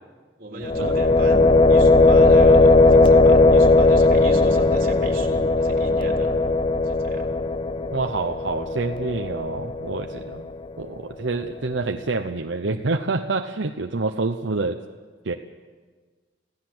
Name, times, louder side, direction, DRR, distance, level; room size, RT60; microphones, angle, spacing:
voice 1, 0.4-6.3 6.8-7.3, right 1 dB, 50° right, 1 dB, 3.6 m, -35 dB
sound 1, 0.6-10.5, left 2 dB, 25° left, 0.6 m, -17 dB
voice 2, 7.9-10.5 10.8-14.8 15.2-15.3, right 3 dB, 80° right, 5 dB, 0.9 m, -27 dB
26.5 x 16.5 x 7.8 m, 1.5 s
head